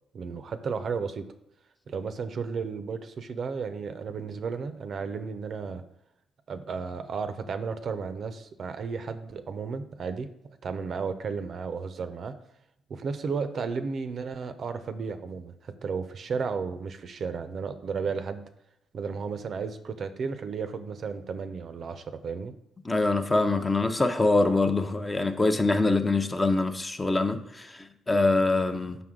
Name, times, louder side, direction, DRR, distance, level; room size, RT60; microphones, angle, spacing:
voice 1, 0.1-1.3 1.9-5.8 6.5-10.3 10.6-12.3 12.9-18.4 18.9-22.5, right 5 dB, 55° right, 10 dB, 0.5 m, -33 dB
voice 2, 22.8-29.0, left 2 dB, 20° left, 7 dB, 0.6 m, -24 dB
6.0 x 5.5 x 3.7 m, 0.84 s
cardioid pair, 90°, 0 cm